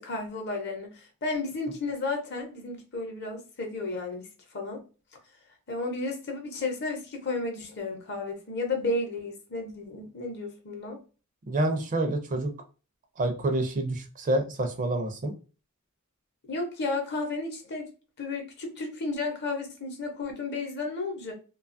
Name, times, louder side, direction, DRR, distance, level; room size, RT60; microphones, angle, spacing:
voice 1, 0.0-4.3 4.5-4.8 5.7-11.0 16.5-17.9 18.2-21.3, left 3 dB, 50° left, 0.7 m, -33 dB
voice 2, 11.5-12.5 13.2-15.3, right 2 dB, 35° right, 0.4 m, -27 dB
2.7 x 2.3 x 2.5 m
head